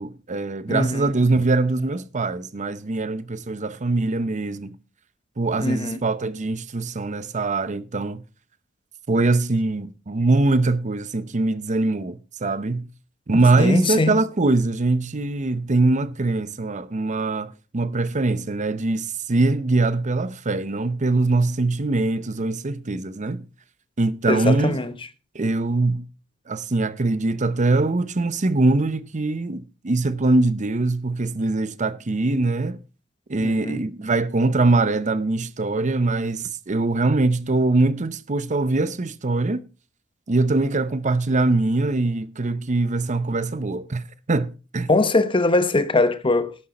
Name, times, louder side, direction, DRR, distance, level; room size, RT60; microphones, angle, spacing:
voice 1, 0.0-4.8 5.4-8.2 9.1-12.9 13.3-23.4 24.0-24.8 25.3-26.0 26.5-32.8 33.3-39.6 40.3-44.0 44.3-44.9, right 2 dB, 35° right, 0.7 m, -22 dB
voice 2, 0.7-1.1 5.6-6.0 13.6-14.2 24.3-24.9 33.4-33.8 44.9-46.6, left 2 dB, 25° left, 0.9 m, -21 dB
12.5 x 9.9 x 4.2 m
head